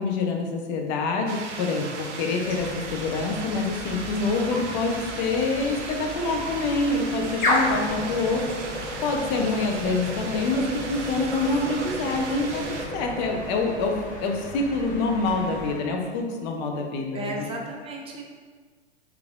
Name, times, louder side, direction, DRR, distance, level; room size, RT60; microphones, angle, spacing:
voice 1, 0.0-8.5 9.0-17.5, left 3 dB, 40° left, 2 dB, 0.7 m, -26 dB
sound 1, 1.3-12.9, right 4 dB, 80° right, 0.7 m, -37 dB
sound 2, 2.4-15.8, left 1 dB, 20° left, 1.1 m, -33 dB
voice 2, 17.1-18.2, right 1 dB, 15° right, 0 dB, 0.5 m, -34 dB
3.5 x 3.3 x 3.5 m, 1.5 s
hypercardioid pair, 115°, 35 cm